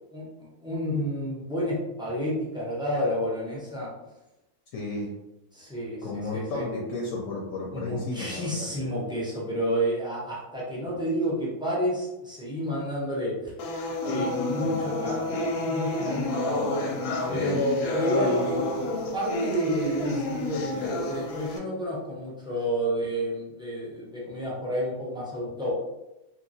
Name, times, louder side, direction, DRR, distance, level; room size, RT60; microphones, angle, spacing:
voice 1, 0.0-3.9 5.5-6.1 6.3-6.6 7.7-13.5 14.0-16.7 17.3-18.6 19.1-25.7, equal, 5° right, -6 dB, 0.3 m, -30 dB
voice 2, 4.7-5.1 6.0-9.0 17.2-18.0, left 3 dB, 70° left, -2 dB, 0.9 m, -34 dB
sound 1, 13.6-21.6, left 2 dB, 85° left, 1.2 m, -29 dB
2.8 x 2.8 x 2.7 m, 0.95 s
omnidirectional pair, 1.6 m